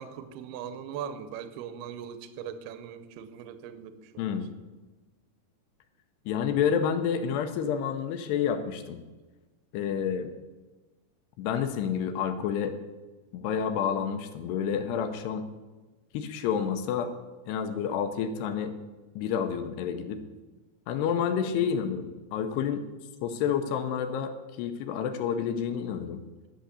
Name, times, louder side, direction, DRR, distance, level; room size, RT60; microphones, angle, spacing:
voice 1, 0.0-4.3 21.4-21.9, right 8 dB, 80° right, 11 dB, 2.4 m, -40 dB
voice 2, 4.2-4.5 6.3-9.0 9.7-10.3 11.4-12.8 13.3-15.4 16.1-17.1 17.5-18.7 19.2-20.2 20.9-22.8 23.2-26.2, left 7 dB, 80° left, 8 dB, 2.6 m, -29 dB
11.5 x 6.5 x 8.2 m, 1.2 s
omnidirectional pair, 5.2 m